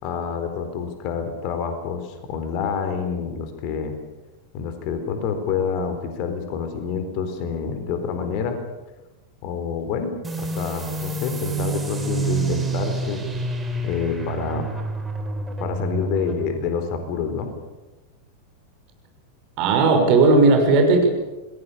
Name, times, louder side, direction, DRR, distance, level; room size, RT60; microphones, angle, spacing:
voice 1, 0.0-4.0 4.5-8.6 9.4-13.2 13.8-14.7 15.6-17.5, left 6 dB, 45° left, 7 dB, 4.2 m, -27 dB
sound 1, 10.2-17.5, right 3 dB, 15° right, 4.3 m, -29 dB
voice 2, 19.6-21.1, right 3 dB, 40° right, 4 dB, 6.2 m, -16 dB
27.5 x 21.5 x 7.1 m, 1.1 s
figure-of-eight pair, 90°, 0 cm